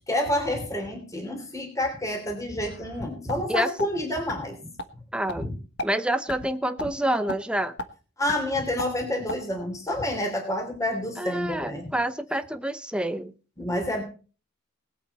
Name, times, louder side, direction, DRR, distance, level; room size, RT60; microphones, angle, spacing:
voice 1, 0.1-4.6 5.4-5.5 8.2-11.9 13.6-14.0, left 1 dB, 15° left, 4 dB, 3.1 m, -28 dB
sound 1, 2.7-3.4 3.8-3.9 4.3-4.4 4.8-4.9 5.3-5.4 5.8-5.9 6.3-6.5 6.8-6.9 7.3-7.4 7.8-7.9 8.3-8.4 8.8-8.9 9.3-9.4, left 2 dB, 55° left, 1.3 m, -33 dB
voice 2, 5.1-5.5 5.8-7.7 11.2-13.3, right 1 dB, 5° right, 9 dB, 0.8 m, -27 dB
20.0 x 8.3 x 4.2 m, 0.36 s
head